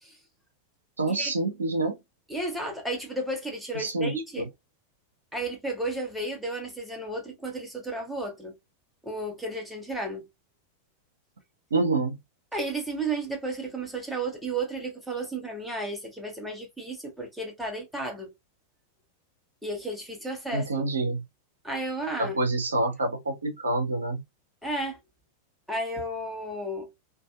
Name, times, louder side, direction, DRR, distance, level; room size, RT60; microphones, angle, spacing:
voice 1, 1.0-2.0 3.7-4.5 11.7-12.2 20.5-21.2 22.2-24.2, right 2 dB, 75° right, 0.6 m, -27 dB
voice 2, 2.3-4.5 5.3-8.6 9.0-10.3 12.5-18.3 19.6-20.9 21.6-22.4 24.6-25.0 25.7-26.9, right 2 dB, ahead, 1.0 m, -33 dB
2.6 x 2.5 x 2.3 m
figure-of-eight pair, 90°, 0 cm